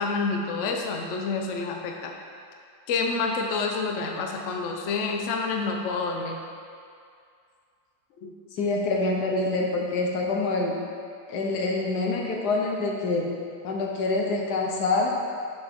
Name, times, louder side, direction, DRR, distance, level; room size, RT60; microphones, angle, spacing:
voice 1, 0.0-2.1 2.9-6.4 8.2-8.3, left 4 dB, 90° left, 2 dB, 0.6 m, -28 dB
voice 2, 8.6-10.8 11.3-13.3 13.6-15.1, left 3 dB, 60° left, 0 dB, 1.3 m, -26 dB
6.8 x 6.3 x 3.6 m, 2.3 s
omnidirectional pair, 2.1 m